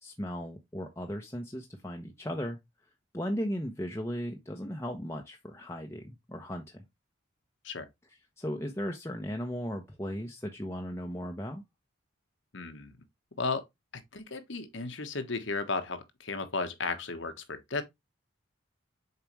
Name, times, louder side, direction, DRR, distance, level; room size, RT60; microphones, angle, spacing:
voice 1, 0.0-2.6 3.1-6.8 8.4-11.6, equal, 15° left, 0.8 m, -36 dB
voice 2, 12.5-13.0 13.4-13.6 13.9-17.8, left 3 dB, 65° left, 1.2 m, -34 dB
7.0 x 4.8 x 3.1 m
head